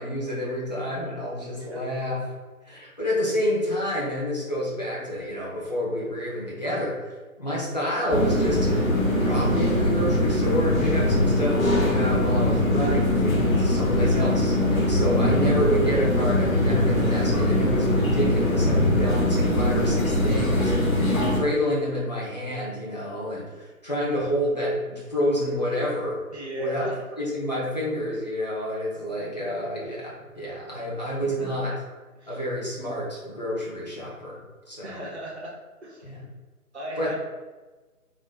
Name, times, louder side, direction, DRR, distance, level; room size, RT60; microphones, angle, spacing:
voice 1, 0.0-2.2 2.7-7.0 7.4-20.7 21.1-26.2 26.6-26.9 27.2-31.7 32.3-35.1 36.0-36.2 37.0-37.2, equal, 30° left, -6 dB, 0.7 m, -29 dB
voice 2, 1.5-1.8 26.3-27.0 31.4-31.6 32.2-32.4 34.8-35.5 35.8-36.0 36.7-37.2, equal, 45° right, -2 dB, 0.9 m, -36 dB
sound 1, 8.1-21.4, left 1 dB, 60° left, 0.9 m, -22 dB
3.9 x 3.1 x 2.3 m, 1.3 s
figure-of-eight pair, 160°, 45 cm